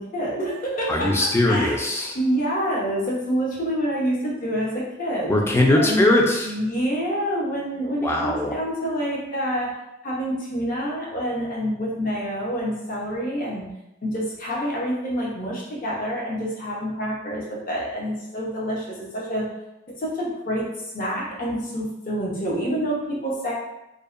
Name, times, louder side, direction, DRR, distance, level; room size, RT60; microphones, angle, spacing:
voice 1, 0.0-1.1 1.4-1.7 2.1-5.4 5.7-6.1 6.4-9.7 10.0-13.6 14.0-19.5 19.9-20.7 20.9-23.5, equal, 50° left, -5 dB, 0.7 m, -27 dB
voice 2, 0.9-2.2 5.3-6.5 8.0-8.6, left 1 dB, 15° left, 0 dB, 0.3 m, -20 dB
2.6 x 2.0 x 2.4 m, 0.90 s
head